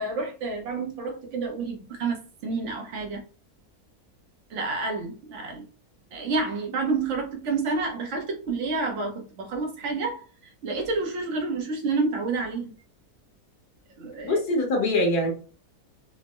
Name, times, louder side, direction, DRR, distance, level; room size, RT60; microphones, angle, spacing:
voice 1, 0.0-3.2 4.5-5.7 6.1-12.7 14.0-14.4, right 3 dB, 55° right, 1.1 m, -29 dB
voice 2, 14.2-15.3, left 1 dB, 85° left, 1.7 m, -23 dB
4.4 x 2.1 x 2.9 m
omnidirectional pair, 1.6 m